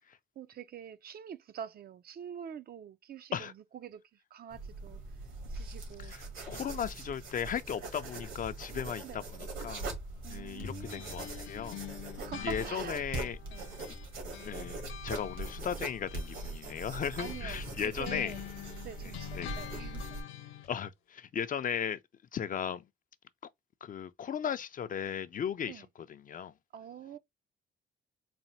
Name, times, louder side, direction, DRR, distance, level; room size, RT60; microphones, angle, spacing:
voice 1, 0.4-5.0 5.4-6.8 9.0-9.3 10.2-11.1 12.1-13.1 13.5-13.7 17.2-18.4 18.8-20.2 25.7-25.9 26.7-27.2, right 8 dB, 50° right, 0.5 m, -45 dB
sound 1, 4.5-20.2, right 2 dB, 80° right, 2.0 m, -42 dB
voice 2, 6.5-9.9 10.3-11.8 12.4-13.4 13.9-14.0 14.5-14.8 15.0-18.3 19.3-19.5 20.7-22.0 22.3-22.8 23.8-26.5, left 8 dB, 45° left, 0.4 m, -36 dB
sound 2, 10.6-14.1 14.3-20.7, left 10 dB, 80° left, 0.8 m, -45 dB
4.1 x 2.1 x 4.1 m
cardioid pair, 90°, 20 cm